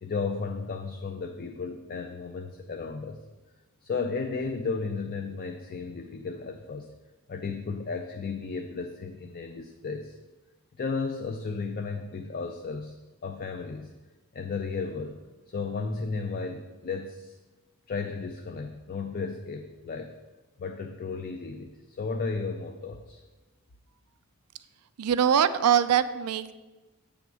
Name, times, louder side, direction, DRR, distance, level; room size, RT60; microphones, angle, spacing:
voice 1, 0.0-3.2 3.8-6.9 7.3-10.2 10.8-13.9 14.3-15.2 15.5-17.4 17.9-20.1 20.6-23.2, left 4 dB, 40° left, 5 dB, 0.4 m, -34 dB
voice 2, 25.0-26.5, right 8 dB, 80° right, 13 dB, 0.4 m, -23 dB
7.6 x 3.6 x 6.1 m, 1.2 s
head